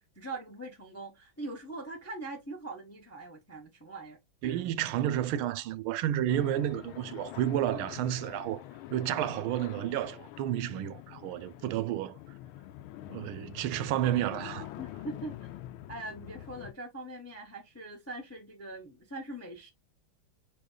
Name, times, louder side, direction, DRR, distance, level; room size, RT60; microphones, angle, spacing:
voice 1, 0.2-4.6 11.5-11.8 14.8-15.5 15.9-19.7, right 2 dB, 15° left, 0.5 m, -42 dB
voice 2, 4.4-8.6 8.9-12.2 13.1-14.7, right 12 dB, 85° right, 1.4 m, -31 dB
sound 1, 6.3-16.7, left 14 dB, 85° left, 1.4 m, -45 dB
5.1 x 4.4 x 2.2 m
omnidirectional pair, 2.2 m